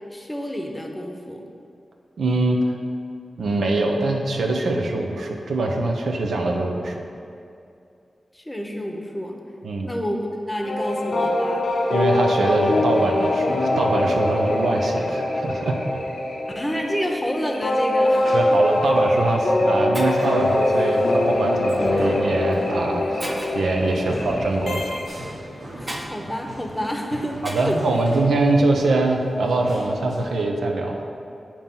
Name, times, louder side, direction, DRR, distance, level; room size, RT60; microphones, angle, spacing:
voice 1, 0.1-1.4 8.3-9.4 9.8-11.6 16.5-18.6 24.0-24.3 25.8-27.8, equal, 15° left, 1 dB, 0.8 m, -29 dB
voice 2, 2.2-2.6 3.4-7.0 9.6-9.9 11.9-15.8 18.3-25.0 27.4-31.1, right 2 dB, 85° right, 1 dB, 0.5 m, -23 dB
sound 1, 10.6-25.1, left 1 dB, 75° left, 0.6 m, -23 dB
sound 2, 17.6-30.4, equal, 65° right, 1.2 m, -39 dB
Shatter, 18.7-18.9 19.6-19.7 19.9-20.4 21.7-21.9 22.5-22.6 23.2-23.7 25.9-26.1 27.4-27.8, right 1 dB, 20° right, 0.7 m, -34 dB
7.2 x 2.9 x 5.3 m, 2.5 s
cardioid pair, 45°, 0 cm